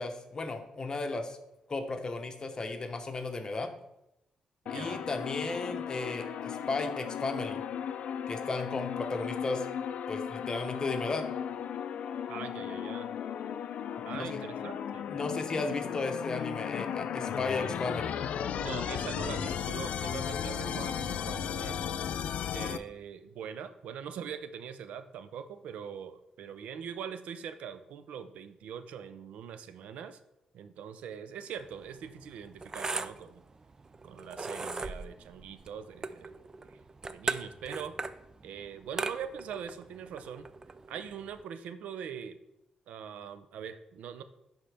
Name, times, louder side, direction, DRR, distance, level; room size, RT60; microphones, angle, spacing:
voice 1, 0.0-1.4 1.7-3.7 4.7-7.6 8.3-9.7 10.1-11.3 14.2-14.4 15.1-18.1, left 3 dB, 35° left, 6 dB, 0.9 m, -34 dB
sound 1, 4.7-22.8, left 8 dB, 75° left, 0.4 m, -35 dB
voice 2, 12.3-13.1 14.0-15.1 18.6-21.8 22.5-30.2 30.5-33.4 34.0-36.8 37.1-37.9 38.4-40.5 40.9-42.4 42.9-44.2, right 8 dB, 90° right, 11 dB, 0.5 m, -42 dB
sound 2, 31.6-41.4, right 3 dB, 25° right, 0.4 m, -39 dB
11.0 x 4.3 x 3.4 m, 0.87 s
cardioid pair, 95°, 2 cm